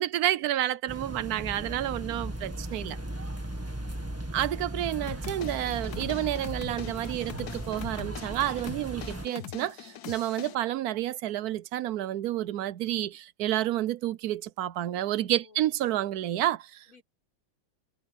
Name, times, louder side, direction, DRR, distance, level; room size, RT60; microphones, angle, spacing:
voice 1, 0.0-3.0 4.3-16.8, right 13 dB, 75° right, 0.8 m, -30 dB
sound 1, 0.9-9.3, right 1 dB, 10° right, 1.5 m, -37 dB
voice 2, 1.8-2.1 15.2-15.7 16.9-17.0, left 4 dB, 90° left, 5.7 m, -60 dB
sound 2, 5.1-10.5, left 11 dB, 60° left, 1.1 m, -43 dB
omnidirectional pair, 2.2 m